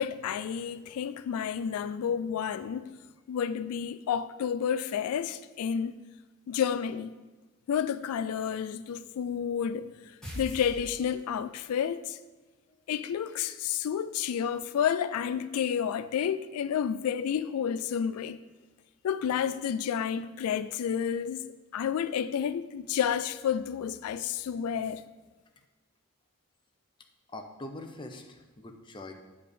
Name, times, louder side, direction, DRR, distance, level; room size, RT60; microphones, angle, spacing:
voice 1, 0.0-3.0 3.3-5.9 6.5-7.1 7.7-9.9 10.4-12.2 12.9-18.4 19.0-25.0, left 8 dB, 85° left, 0.3 m, -30 dB
sound 1, 10.2-11.5, equal, 5° left, 2.1 m, -41 dB
voice 2, 27.3-29.1, left 2 dB, 20° left, 0.6 m, -43 dB
8.3 x 3.5 x 6.7 m
head